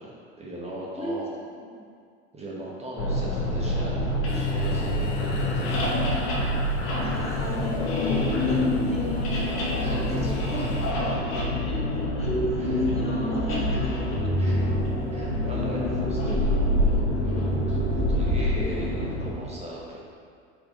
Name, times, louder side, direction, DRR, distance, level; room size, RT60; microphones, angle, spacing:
voice 1, 0.0-1.3 2.3-6.1 9.8-10.7 11.1-11.4 12.5-12.8 14.4-14.6 15.1-20.0, right 1 dB, 20° right, -4 dB, 1.0 m, -38 dB
voice 2, 0.9-1.9 7.0-7.9 8.3-10.8 11.6-11.8 12.2-14.0, equal, 15° left, -4 dB, 1.3 m, -36 dB
sound 1, 3.0-19.3, left 1 dB, 40° left, 1.5 m, -27 dB
sound 2, 4.3-10.9, left 4 dB, 65° left, 0.9 m, -39 dB
sound 3, 11.9-12.0 12.4-12.7 13.0-13.1 13.4-14.1 14.6-18.8, left 1 dB, 75° right, 1.0 m, -27 dB
4.9 x 4.4 x 4.8 m, 2.2 s
hypercardioid pair, 80°, 34 cm